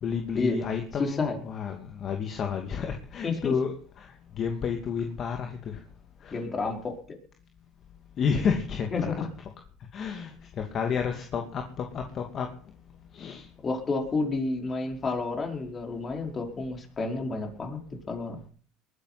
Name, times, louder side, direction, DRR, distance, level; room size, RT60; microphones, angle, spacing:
voice 1, 0.0-4.1 4.4-5.8 6.2-6.4 8.2-9.3 9.9-10.3 10.6-12.5 13.1-13.5, left 6 dB, 45° left, 4 dB, 2.5 m, -31 dB
voice 2, 1.0-1.4 3.2-3.6 6.3-6.9 8.9-9.3 13.6-17.8 18.1-18.4, left 3 dB, 30° left, 3 dB, 5.0 m, -30 dB
21.5 x 9.8 x 6.0 m, 0.43 s
supercardioid pair, 95°, 0 cm